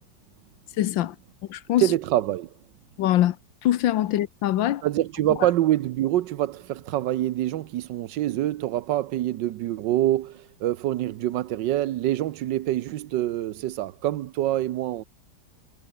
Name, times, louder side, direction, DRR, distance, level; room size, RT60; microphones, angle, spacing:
voice 1, 0.8-1.1 1.5-1.9 3.0-3.4 3.6-4.8 5.3-5.4, left 13 dB, 85° left, 1.6 m, -23 dB
voice 2, 1.8-2.5 4.8-15.0, right 14 dB, 75° right, 1.4 m, -25 dB
omnidirectional pair, 2.0 m